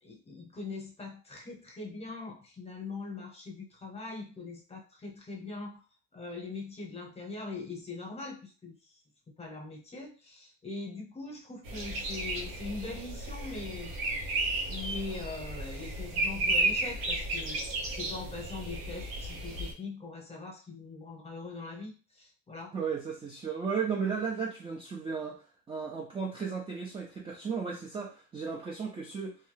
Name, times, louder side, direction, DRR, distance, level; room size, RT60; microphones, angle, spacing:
voice 1, 0.0-5.8 6.1-9.0 9.3-13.9 14.7-17.6 17.9-22.7, left 3 dB, 20° left, 0 dB, 0.8 m, -42 dB
sound 1, 11.6-19.7, right 2 dB, 85° right, 0.9 m, -33 dB
voice 2, 22.7-29.4, right 6 dB, 15° right, -1 dB, 0.3 m, -35 dB
2.7 x 2.2 x 3.2 m, 0.36 s
cardioid pair, 135°, 34 cm